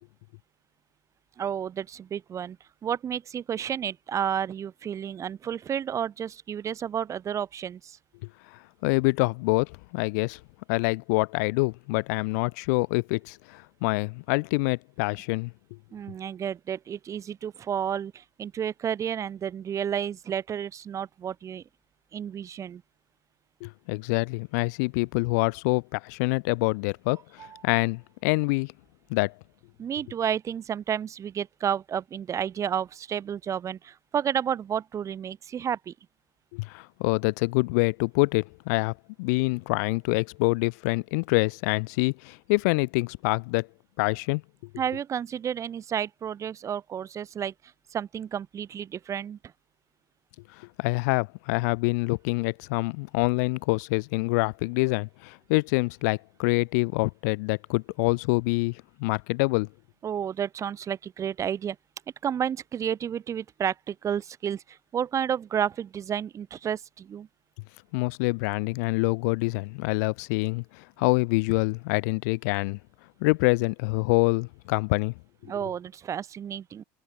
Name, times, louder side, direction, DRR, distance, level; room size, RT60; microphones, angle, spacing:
voice 1, 1.4-2.6 2.8-8.0 15.9-21.6 22.1-22.8 27.4-27.6 29.8-35.9 44.8-47.5 47.9-49.4 60.0-61.8 62.2-67.3 75.5-76.8, right 8 dB, 35° right, 3.0 m, -31 dB
voice 2, 8.8-10.4 10.7-15.5 23.6-28.7 29.1-29.3 36.5-43.7 44.0-44.4 50.6-59.7 67.9-72.8 73.2-75.1, left 28 dB, 80° left, 1.3 m, -26 dB
supercardioid pair, 110°, 9 cm